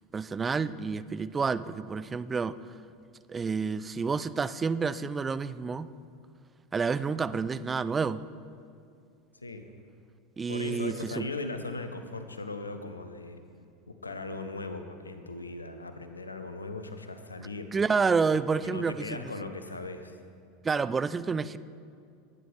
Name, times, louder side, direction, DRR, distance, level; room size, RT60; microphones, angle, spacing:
voice 1, 0.1-2.6 3.3-5.9 6.7-8.3 10.4-11.3 17.7-19.2 20.6-21.6, right 5 dB, 20° right, 15 dB, 0.4 m, -29 dB
voice 2, 9.3-9.7 10.5-13.4 13.9-17.7 18.6-20.2, left 3 dB, 85° left, 8 dB, 0.8 m, -38 dB
19.0 x 9.6 x 3.4 m, 2.3 s
figure-of-eight pair, 80°, 0 cm